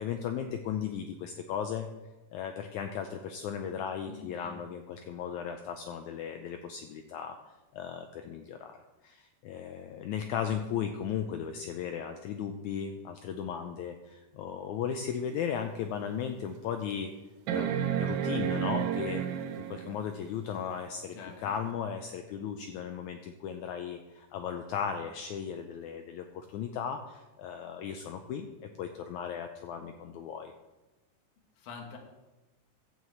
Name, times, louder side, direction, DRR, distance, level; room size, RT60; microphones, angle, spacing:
voice 1, 0.0-1.9 2.3-7.4 7.7-8.8 9.0-17.1 17.5-19.4 19.7-30.5, left 8 dB, 80° left, 6 dB, 1.7 m, -36 dB
voice 2, 4.1-4.6 21.1-21.5 31.6-32.0, left 5 dB, 65° left, 2 dB, 2.8 m, -45 dB
sound 1, 15.3-15.4 16.0-16.1 17.5-20.0 21.7-21.8, right 9 dB, 75° right, 1.7 m, -31 dB
12.5 x 4.8 x 7.8 m, 1.1 s
omnidirectional pair, 4.0 m